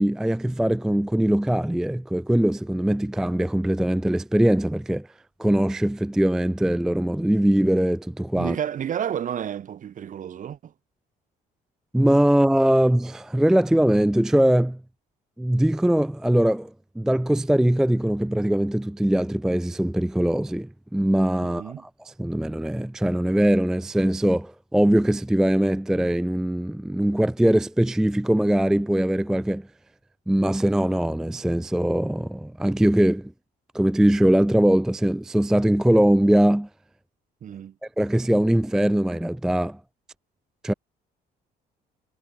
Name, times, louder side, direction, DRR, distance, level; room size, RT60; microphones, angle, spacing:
voice 1, 0.0-5.1 5.4-8.6 11.9-14.8 15.4-16.7 17.0-29.7 30.3-33.3 33.7-36.7 38.0-39.8 40.6-40.7, right 1 dB, 5° right, 0.4 m, -21 dB
voice 2, 8.4-10.7 21.4-21.8 37.4-37.7, right 9 dB, 50° right, 2.8 m, -31 dB
cardioid pair, 110°, 17 cm